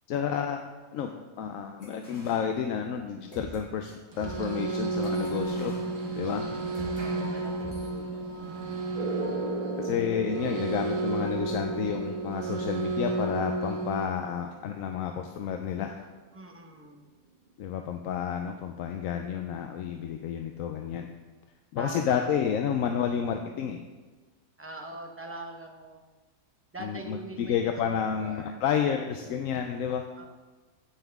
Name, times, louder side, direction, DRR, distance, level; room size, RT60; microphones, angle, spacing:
voice 1, 0.1-0.6 0.9-1.1 1.4-5.8 6.1-6.5 9.8-16.1 17.6-21.1 21.7-23.8 26.8-30.1, left 8 dB, 75° left, 5 dB, 1.0 m, -30 dB
sound 1, 1.8-3.0 3.3-7.0 7.6-7.9, equal, 35° left, 2.3 m, -47 dB
sound 2, 4.1-14.1, right 3 dB, 65° right, 1.7 m, -32 dB
voice 2, 6.8-8.5 16.3-17.1 21.8-22.3 24.6-26.0 26.7-28.6 30.2-30.3, right 2 dB, 10° right, 1 dB, 0.8 m, -43 dB
sound 3, 8.9-16.1, right 3 dB, 40° right, 1.0 m, -39 dB
15.0 x 5.7 x 3.5 m, 1.3 s
omnidirectional pair, 1.5 m